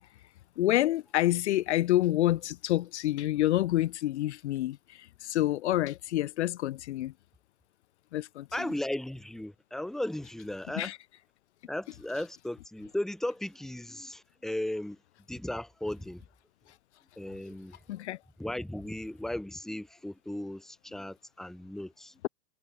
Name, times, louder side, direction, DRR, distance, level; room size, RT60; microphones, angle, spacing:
voice 1, 0.6-7.1 8.1-8.5 10.8-11.0 17.9-18.2, left 14 dB, 45° left, 1.9 m, -28 dB
voice 2, 8.5-10.9 11.7-15.0 15.3-16.2 17.2-17.8 18.4-22.1, left 1 dB, ahead, 2.6 m, -36 dB
hypercardioid pair, 165°, 48 cm